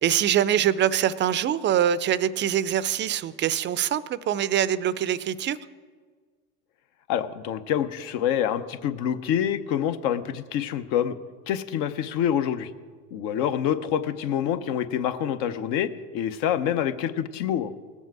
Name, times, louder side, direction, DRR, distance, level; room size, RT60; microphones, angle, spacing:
voice 1, 0.0-5.6, right 10 dB, 30° right, 17 dB, 0.4 m, -24 dB
voice 2, 7.1-11.2 11.5-12.7 13.1-17.7, left 9 dB, 65° left, 11 dB, 0.8 m, -26 dB
18.0 x 7.3 x 4.6 m, 1.5 s
hypercardioid pair, 95°, 42 cm